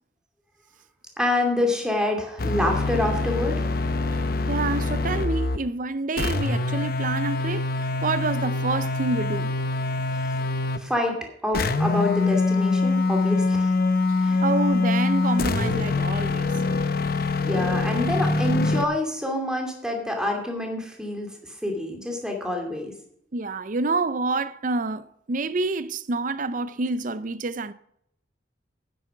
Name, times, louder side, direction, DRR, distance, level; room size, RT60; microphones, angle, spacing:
voice 1, 1.2-3.7 10.2-10.3 10.8-13.7 14.2-14.4 17.2-22.9, left 1 dB, 5° right, 2.5 m, -27 dB
sound 1, 2.4-5.7 6.2-10.9 11.5-18.9, left 3 dB, 55° left, 0.8 m, -24 dB
voice 2, 4.5-9.5 14.4-16.5 23.3-27.7, right 3 dB, 45° right, 0.6 m, -27 dB
9.8 x 9.0 x 5.8 m
head